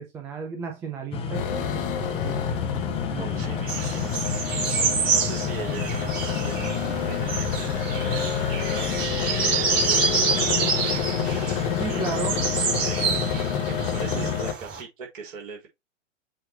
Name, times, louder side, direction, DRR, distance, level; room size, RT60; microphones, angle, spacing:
voice 1, 0.0-2.5 3.1-3.8 11.7-12.3 14.1-14.3, right 5 dB, 5° right, 0.4 m, -35 dB
sound 1, 1.1-14.4, left 6 dB, 15° left, 0.9 m, -32 dB
sound 2, 1.3-14.5, left 7 dB, 45° left, 1.1 m, -29 dB
voice 2, 3.2-4.1 5.0-6.8 7.1-9.2 9.5-10.8 11.9-12.4 12.8-13.1 13.7-15.7, right 5 dB, 45° right, 4.0 m, -40 dB
sound 3, 3.7-14.8, right 5 dB, 25° right, 3.0 m, -28 dB
7.4 x 3.2 x 4.5 m
figure-of-eight pair, 105°, 37 cm